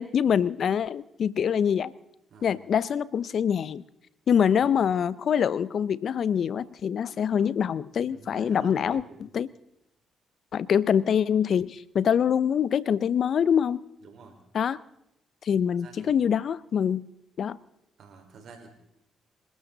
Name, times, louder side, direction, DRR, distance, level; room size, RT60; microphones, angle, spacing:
voice 1, 0.0-1.9 2.4-3.8 4.3-9.0 9.3-9.5 10.5-13.8 14.5-14.8 15.4-17.1 17.4-17.6, left 8 dB, 60° left, 20 dB, 0.6 m, -24 dB
voice 2, 8.1-9.3 14.0-14.4 15.8-16.2 18.0-18.7, right 4 dB, 65° right, 3 dB, 4.5 m, -49 dB
27.5 x 13.0 x 3.9 m, 0.81 s
hypercardioid pair, 50°, 0 cm